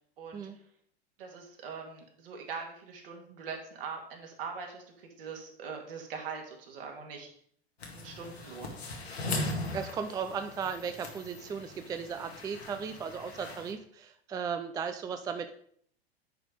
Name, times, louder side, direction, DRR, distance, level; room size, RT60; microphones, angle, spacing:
voice 1, 0.2-0.5 1.2-7.3 7.9-8.8, right 5 dB, 60° right, 2 dB, 2.2 m, -42 dB
sound 1, 7.8-13.7, left 2 dB, 75° left, 1.9 m, -39 dB
voice 2, 9.3-15.5, right 6 dB, 10° right, 8 dB, 0.4 m, -36 dB
9.3 x 4.9 x 5.0 m, 0.63 s
figure-of-eight pair, 85°, 32 cm